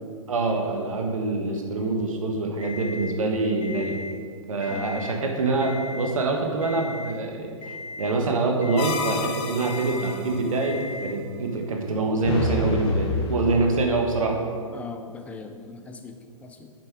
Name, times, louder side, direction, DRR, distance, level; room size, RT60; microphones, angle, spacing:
voice 1, 0.3-4.0 4.5-14.4, right 3 dB, 70° right, 2 dB, 1.5 m, -25 dB
Alarm, 2.6-3.2 3.6-4.2 4.6-5.2 5.6-6.2 6.6-7.2 7.6-8.2 8.6-9.2 9.6-10.2 10.6-11.2, left 3 dB, 80° left, 0.9 m, -38 dB
voice 2, 4.7-5.0 14.7-16.7, left 5 dB, 10° left, 6 dB, 0.4 m, -41 dB
sound 1, 8.8-10.4 12.2-13.8, left 4 dB, 50° left, 0.9 m, -28 dB
7.5 x 5.7 x 4.8 m, 2.1 s
hypercardioid pair, 125°, 18 cm